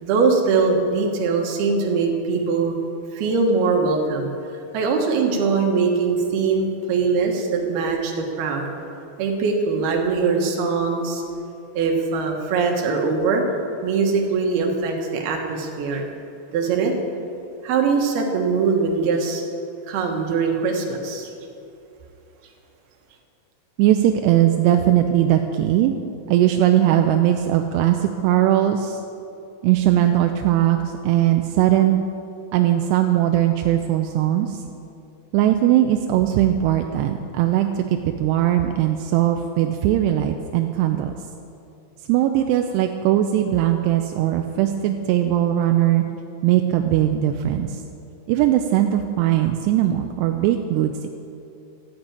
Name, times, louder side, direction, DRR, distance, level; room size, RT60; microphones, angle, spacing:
voice 1, 0.0-2.7 3.1-4.3 4.7-8.7 9.2-11.2 11.7-13.4 13.8-16.0 16.5-16.9 17.6-19.4 19.9-21.3, right 4 dB, 65° right, 2 dB, 3.2 m, -22 dB
voice 2, 23.8-26.0 26.3-28.0 28.2-29.0 29.6-32.0 32.5-34.6 35.3-41.1 42.1-46.0 46.4-47.8 48.3-51.1, right 12 dB, 80° right, 5 dB, 2.6 m, -19 dB
13.5 x 8.8 x 8.8 m, 2.7 s
omnidirectional pair, 5.1 m